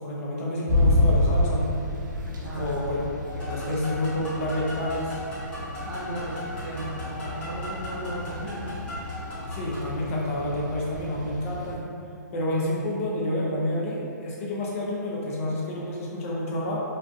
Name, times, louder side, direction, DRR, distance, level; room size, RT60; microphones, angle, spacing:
voice 1, 0.0-1.7 2.6-3.2 3.5-5.2 9.5-11.9 12.3-16.8, left 1 dB, 45° left, -4 dB, 0.6 m, -29 dB
sound 1, 0.7-11.8, left 1 dB, 80° right, 0.5 m, -29 dB
voice 2, 2.4-2.8 5.8-8.8, right 1 dB, 25° right, -12 dB, 0.6 m, -36 dB
sound 2, 3.2-9.9, left 1 dB, 10° left, 0.8 m, -39 dB
2.4 x 2.4 x 2.3 m, 2.5 s
hypercardioid pair, 130°, 10 cm